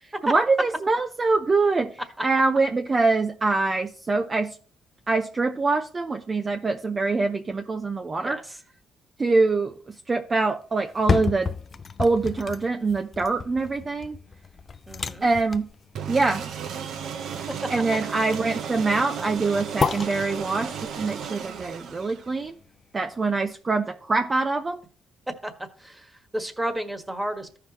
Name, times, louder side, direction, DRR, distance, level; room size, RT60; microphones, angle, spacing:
voice 1, 0.0-4.6 5.1-8.4 9.2-11.5 12.0-14.2 15.2-15.7 16.1-16.4 17.7-22.5 22.9-24.8, right 3 dB, 30° right, 0.6 m, -24 dB
sound 1, 10.8-22.8 23.3-23.4, left 5 dB, 40° left, 0.5 m, -32 dB
voice 2, 14.9-15.3 25.4-25.5 25.8-27.6, right 1 dB, 15° right, 1.5 m, -32 dB
sound 2, 16.0-22.5, right 7 dB, 75° right, 0.9 m, -34 dB
14.0 x 5.9 x 3.0 m
cardioid pair, 90°, 0 cm